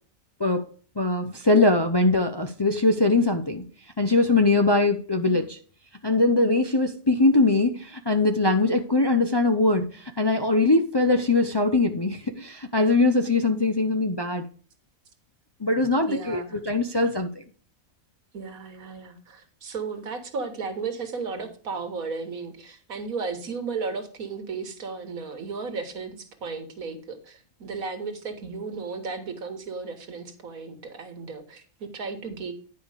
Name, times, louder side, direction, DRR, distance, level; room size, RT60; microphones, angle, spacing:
voice 1, 1.0-3.6 4.0-5.6 6.0-14.4 15.6-16.4 16.6-17.3, left 2 dB, 30° left, 0.5 m, -22 dB
voice 2, 16.0-16.6 18.3-32.5, right 4 dB, 85° right, 1.8 m, -34 dB
10.0 x 5.1 x 4.9 m
omnidirectional pair, 1.4 m